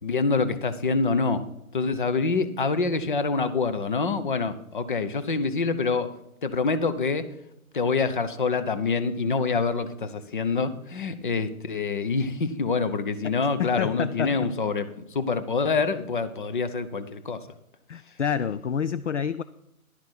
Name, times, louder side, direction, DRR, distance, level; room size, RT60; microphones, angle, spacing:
voice 1, 0.0-1.5 1.7-6.1 6.4-7.3 7.7-17.5, left 4 dB, 35° left, 12 dB, 0.8 m, -26 dB
voice 2, 13.6-14.4 17.9-19.4, left 7 dB, 55° left, 14 dB, 0.5 m, -28 dB
11.5 x 10.0 x 4.4 m, 0.82 s
figure-of-eight pair, 150°, 43 cm